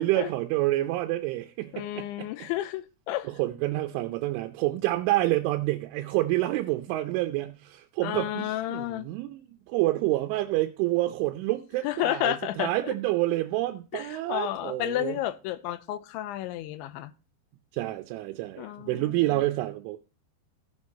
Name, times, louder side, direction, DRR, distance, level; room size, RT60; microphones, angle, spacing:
voice 1, 0.0-2.5 3.3-15.2 17.7-20.0, right 17 dB, 90° right, 3.2 m, -28 dB
voice 2, 1.7-3.3 8.0-9.1 11.8-12.9 13.9-17.1 18.6-19.4, left 14 dB, 85° left, 3.0 m, -32 dB
15.0 x 6.3 x 4.2 m
omnidirectional pair, 5.4 m